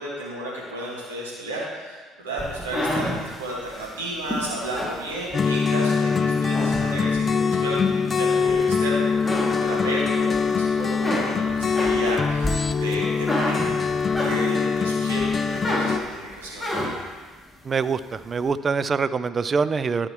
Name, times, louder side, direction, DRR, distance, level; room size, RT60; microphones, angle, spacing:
voice 1, 0.0-17.1, right 1 dB, 80° right, -5 dB, 2.0 m, -33 dB
sound 1, 2.4-5.8 6.2-7.3 7.8-8.8 9.1-10.4 10.7-14.8 15.2-17.2, left 1 dB, 5° left, 2.0 m, -30 dB
sound 2, 5.3-16.0, left 5 dB, 35° left, 0.4 m, -23 dB
voice 2, 17.6-20.1, right 5 dB, 35° right, 14 dB, 0.4 m, -24 dB
11.5 x 5.8 x 3.2 m, 1.4 s
figure-of-eight pair, 55°, 0 cm